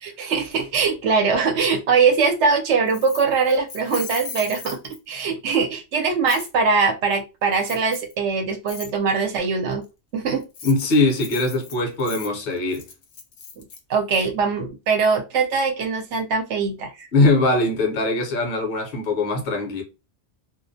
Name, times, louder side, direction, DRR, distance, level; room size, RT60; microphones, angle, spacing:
voice 1, 0.0-9.8 10.1-10.4 13.6-13.7 13.9-17.1, right 5 dB, 70° right, 0.8 m, -22 dB
Keys jangling, 2.9-5.2 6.3-6.5 7.6-8.1 8.7-8.9 10.4-13.8, left 6 dB, 80° left, 0.9 m, -37 dB
voice 2, 10.6-12.9 17.1-19.8, left 2 dB, 55° left, 0.8 m, -21 dB
2.4 x 2.0 x 2.6 m
omnidirectional pair, 1.3 m